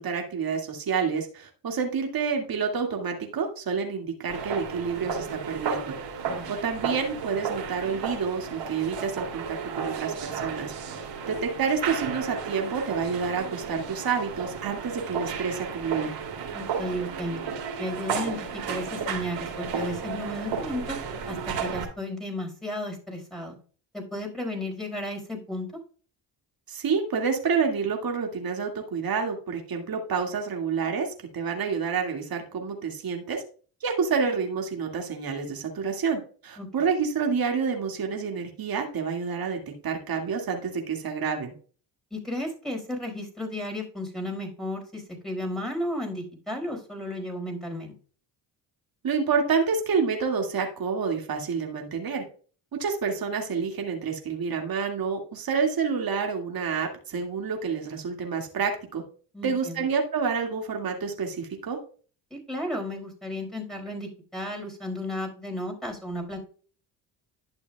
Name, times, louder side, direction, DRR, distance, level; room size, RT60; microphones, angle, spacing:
voice 1, 0.0-6.0 6.5-10.7 11.3-16.1 26.7-33.4 33.8-41.5 49.0-52.2 52.7-59.0 59.4-61.8, right 5 dB, 45° right, 3 dB, 2.2 m, -28 dB
sound 1, 4.3-21.8, right 6 dB, 65° right, 2.9 m, -33 dB
voice 2, 16.5-17.5 17.8-18.4 18.7-21.0 21.3-23.5 23.9-25.7 36.6-36.7 42.1-47.9 59.3-59.8 62.3-66.4, left 1 dB, ahead, -1 dB, 4.8 m, -33 dB
11.5 x 6.7 x 2.3 m, 0.40 s
supercardioid pair, 65°, 47 cm